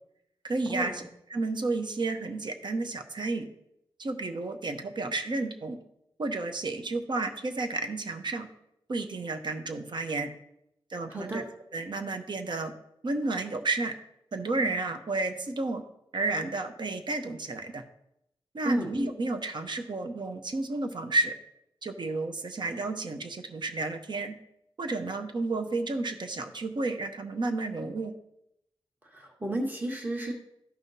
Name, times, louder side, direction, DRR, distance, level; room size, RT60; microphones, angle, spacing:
voice 1, 0.4-1.0 1.3-3.5 4.0-5.8 6.2-8.5 8.9-10.3 10.9-11.4 11.7-12.7 13.0-13.9 14.3-15.8 16.1-17.8 18.5-21.3 21.8-24.3 24.8-28.1, right 3 dB, 50° right, 6 dB, 0.8 m, -31 dB
voice 2, 11.1-11.4 18.6-18.9 29.0-30.3, right 1 dB, 20° right, 0 dB, 1.5 m, -32 dB
13.5 x 5.6 x 2.7 m, 0.79 s
wide cardioid pair, 100°, 10 cm